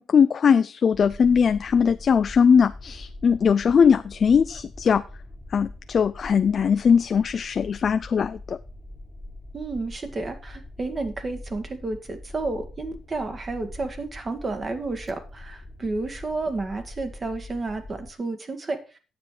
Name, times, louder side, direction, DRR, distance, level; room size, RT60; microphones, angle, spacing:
voice 1, 0.0-5.0 5.5-8.6, left 6 dB, 50° left, 11 dB, 0.4 m, -20 dB
sound 1, 0.9-18.1, left 2 dB, 15° left, 1.5 m, -43 dB
voice 2, 9.5-19.0, right 3 dB, 35° right, 7 dB, 1.8 m, -31 dB
9.7 x 7.3 x 4.8 m, 0.33 s
cardioid pair, 90°, 0 cm